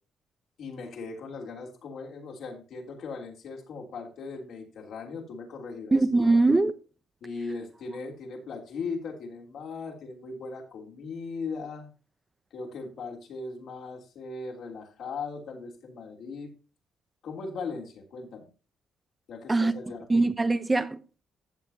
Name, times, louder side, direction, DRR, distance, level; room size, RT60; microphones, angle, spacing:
voice 1, 0.6-6.4 7.2-11.9 12.5-16.5 17.2-18.5 19.3-20.1, left 4 dB, 70° left, 3.1 m, -38 dB
voice 2, 5.9-6.7 19.5-19.7 20.1-21.2, right 2 dB, 20° right, 0.8 m, -22 dB
14.5 x 7.1 x 2.8 m
cardioid pair, 90°, 0 cm